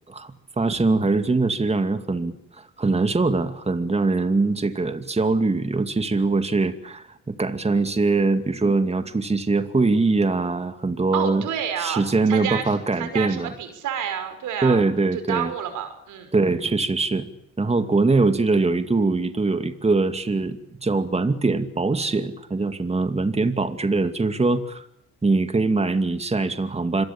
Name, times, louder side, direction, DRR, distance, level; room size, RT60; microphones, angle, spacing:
voice 1, 0.1-11.5 11.8-13.5 14.6-15.5 16.3-17.3 17.6-24.9 25.2-27.0, right 3 dB, 20° right, 9 dB, 2.4 m, -22 dB
voice 2, 11.1-12.0 12.3-14.8 15.1-16.3, right 9 dB, 85° right, 8 dB, 6.0 m, -29 dB
26.5 x 22.5 x 8.8 m, 0.76 s
cardioid pair, 90°, 30 cm